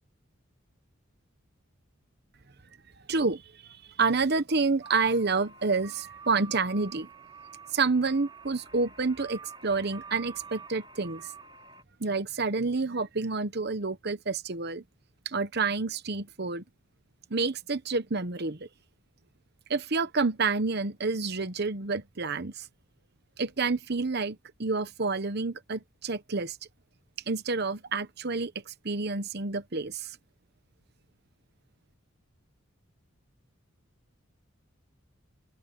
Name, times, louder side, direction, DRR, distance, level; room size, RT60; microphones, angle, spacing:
voice 1, 3.1-3.4 4.0-7.1 7.7-11.3 12.0-14.8 15.2-16.6 17.3-18.7 19.7-22.6 23.4-26.6 27.3-30.1, right 4 dB, 50° right, 1.0 m, -29 dB
sound 1, 4.8-11.8, right 5 dB, 25° right, 4.1 m, -48 dB
open air
head